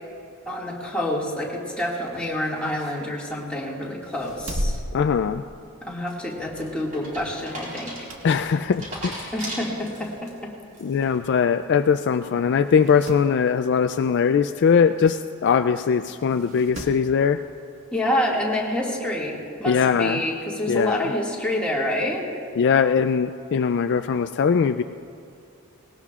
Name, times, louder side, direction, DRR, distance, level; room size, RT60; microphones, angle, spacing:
voice 1, 0.5-4.8 5.8-8.1 9.3-10.5 17.9-22.3, left 1 dB, 5° left, -5 dB, 2.0 m, -27 dB
sound 1, 1.6-3.6 4.0-5.9 6.3-6.5 7.8-8.6 9.1-9.2 10.0-10.1 10.4-10.5 10.7-10.8 11.6-11.8 12.1-12.2 12.6-13.3 15.1-15.2 16.3-17.1 18.4-18.5, equal, 80° right, 1.6 m, -36 dB
voice 2, 4.9-5.4 8.2-9.3 10.8-17.4 19.7-20.2 20.7-21.0 22.6-24.8, left 6 dB, 55° left, 9 dB, 0.3 m, -21 dB
sound 2, 6.1-10.3 10.7-11.2, right 1 dB, 40° right, 4.1 m, -38 dB
19.5 x 18.5 x 2.4 m, 2.4 s
head